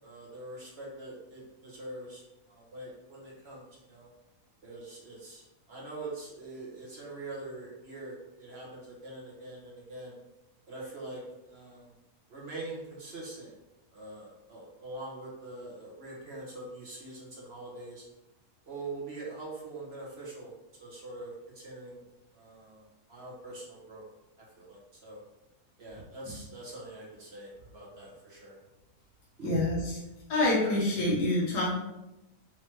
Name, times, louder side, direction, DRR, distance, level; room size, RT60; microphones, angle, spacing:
voice 1, 0.0-4.1 4.6-10.2 10.7-11.9 12.3-13.5 13.9-18.0 18.7-20.5 20.8-22.0 22.3-24.0 24.4-25.2 25.8-28.6 29.4-29.5, right 2 dB, 40° right, -4 dB, 1.3 m, -44 dB
voice 2, 29.4-30.0 30.3-31.7, left 1 dB, 75° left, -6 dB, 1.8 m, -26 dB
5.7 x 2.9 x 3.1 m, 0.95 s
omnidirectional pair, 1.7 m